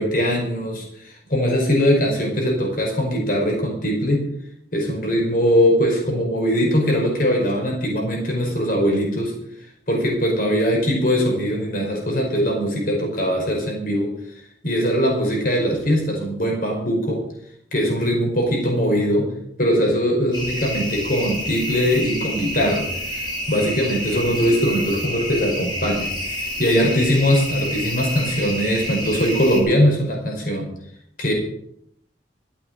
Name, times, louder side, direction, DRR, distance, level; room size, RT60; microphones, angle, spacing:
voice 1, 0.0-4.2 4.7-9.3 9.9-14.1 14.6-17.2 17.7-19.3 19.6-22.9 23.1-30.7 31.2-31.3, equal, 50° left, 0 dB, 5.3 m, -21 dB
sound 1, 20.3-29.6, equal, 25° left, 3.9 m, -29 dB
13.5 x 8.5 x 7.7 m, 0.70 s
head